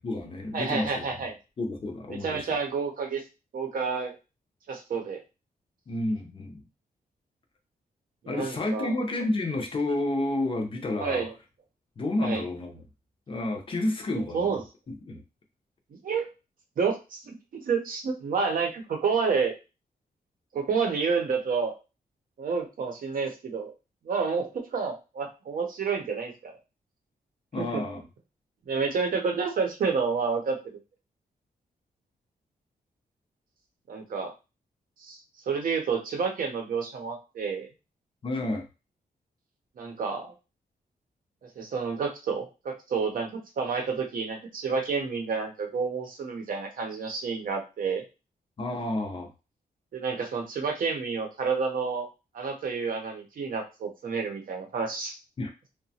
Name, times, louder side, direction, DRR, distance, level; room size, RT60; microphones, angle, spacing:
voice 1, 0.0-1.1 1.6-2.4 5.9-6.6 8.3-11.3 12.0-12.8 13.3-14.5 15.1-15.2 27.5-28.0 38.2-38.6 48.6-49.3 55.4-55.5, left 2 dB, 35° left, 3 dB, 0.5 m, -30 dB
voice 2, 0.5-1.3 2.1-3.2 3.5-4.1 4.7-5.2 8.2-8.9 11.0-11.3 12.2-12.4 14.1-14.6 16.0-16.3 16.8-19.5 20.5-21.7 22.4-23.7 24.0-26.6 27.5-27.8 28.7-30.6 33.9-34.3 35.0-35.2 35.5-37.7 39.8-40.3 41.6-48.0 49.9-52.1 52.3-55.1, right 5 dB, 60° right, 3 dB, 0.7 m, -29 dB
2.8 x 2.1 x 2.7 m, 0.29 s
wide cardioid pair, 175°, 16 cm